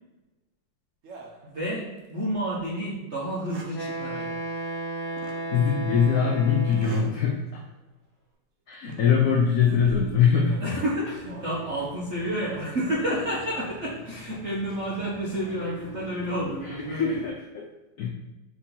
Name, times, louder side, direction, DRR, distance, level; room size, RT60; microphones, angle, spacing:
sound 1, 1.0-2.1 2.5-2.6 3.3-3.8 5.2-5.4 6.7-7.2 7.6-7.8 8.7-9.1 9.5-11.8 13.2-13.5 14.4-14.8, right 2 dB, 90° right, 0.6 m, -45 dB
voice 1, 1.4-4.4 8.8-9.4 10.6-17.1, right 1 dB, 55° right, -6 dB, 0.8 m, -30 dB
Wind instrument woodwind instrument, 3.7-7.2, right 2 dB, 55° left, 1.2 m, -34 dB
voice 2, 5.5-7.6 8.7-10.8 16.6-17.7 18.0-18.1, left 6 dB, 75° left, 0 dB, 0.8 m, -23 dB
sound 2, 11.0-17.3, left 2 dB, 20° left, 0.4 m, -45 dB
4.8 x 2.8 x 3.7 m, 1.1 s
omnidirectional pair, 2.2 m